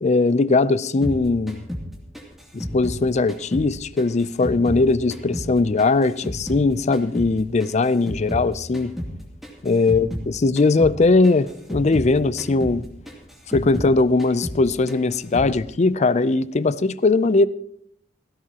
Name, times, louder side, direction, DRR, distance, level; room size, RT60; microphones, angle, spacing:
voice 1, 0.0-1.6 2.5-8.9 9.6-12.8 13.5-17.5, left 3 dB, 35° left, 0.4 m, -20 dB
sound 1, 1.0-3.7 4.0-6.7 6.9-10.3 10.6-11.0 11.2-13.9 14.2-14.6 14.9-15.5, equal, ahead, 2.7 m, -32 dB
17.5 x 16.0 x 2.9 m
head